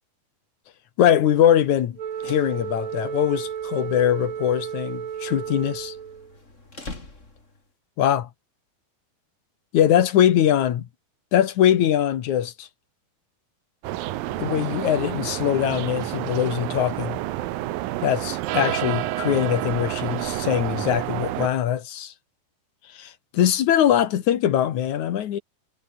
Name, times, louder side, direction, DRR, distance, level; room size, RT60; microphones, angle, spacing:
voice 1, 1.0-2.0 2.2-5.9 8.0-8.3 9.7-10.9 11.3-12.7 14.3-17.2 18.0-22.1 22.9-25.4, left 10 dB, 60° left, 2.4 m, -22 dB
sound 1, 1.9-7.7, left 2 dB, 20° left, 3.9 m, -46 dB
Wind instrument woodwind instrument, 2.0-6.3, right 8 dB, 50° right, 2.8 m, -33 dB
sound 2, 13.8-21.5, right 15 dB, 70° right, 2.5 m, -29 dB
omnidirectional pair, 4.6 m